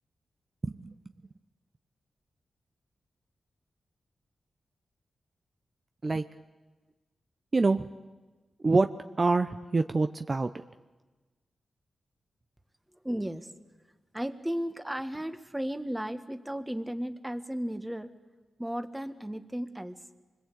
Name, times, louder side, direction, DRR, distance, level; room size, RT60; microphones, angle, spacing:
voice 1, 0.6-0.9 6.0-6.2 7.5-7.9 8.6-8.9 9.2-10.5, right 3 dB, 40° right, 8 dB, 0.8 m, -25 dB
voice 2, 13.0-13.5 14.1-18.1 18.6-20.0, equal, 10° right, 9 dB, 1.8 m, -34 dB
25.5 x 21.0 x 8.4 m, 1.3 s
cardioid pair, 55°, 0 cm